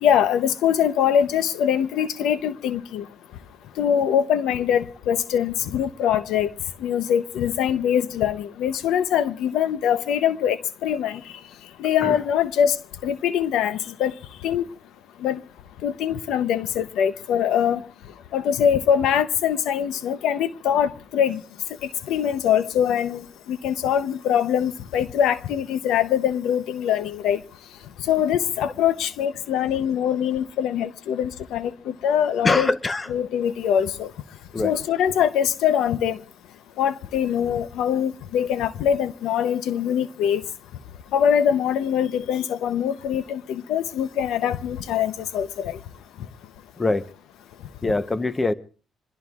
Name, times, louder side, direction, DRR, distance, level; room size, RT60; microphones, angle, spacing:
voice 1, 0.0-3.0 3.8-6.5 6.8-11.2 11.8-12.8 13.0-14.1 14.4-14.6 15.2-15.4 15.8-17.8 18.3-21.4 22.1-23.2 23.5-27.4 28.1-32.7 33.1-34.1 34.6-36.2 36.8-40.4 41.1-45.8, left 9 dB, 85° left, 0.7 m, -23 dB
voice 2, 32.4-33.1 34.5-34.8 46.8-47.1 47.8-48.5, left 2 dB, 25° left, 0.8 m, -23 dB
26.5 x 21.5 x 2.4 m
cardioid pair, 90°, 0 cm